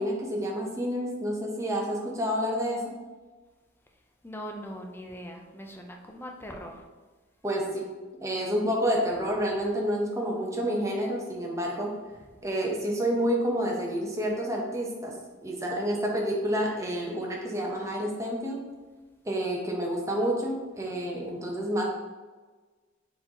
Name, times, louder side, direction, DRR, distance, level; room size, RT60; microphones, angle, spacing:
voice 1, 0.0-2.8 7.4-7.8 8.2-11.9 12.4-15.1 15.4-18.6 19.2-21.8, equal, 15° right, -1 dB, 0.8 m, -29 dB
voice 2, 4.2-6.8, equal, 10° left, 1 dB, 0.5 m, -41 dB
4.4 x 3.9 x 2.9 m, 1.3 s
head